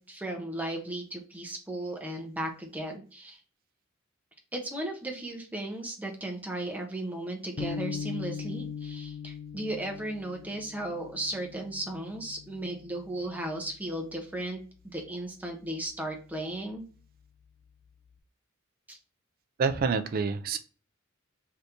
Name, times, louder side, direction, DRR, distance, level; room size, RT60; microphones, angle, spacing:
voice 1, 0.1-3.4 4.5-16.9 18.9-19.0, right 1 dB, 10° right, 0.6 m, -36 dB
sound 1, 7.6-14.0, left 6 dB, 70° left, 0.5 m, -40 dB
voice 2, 19.6-20.6, right 5 dB, 45° right, 0.4 m, -27 dB
3.4 x 2.6 x 2.8 m
head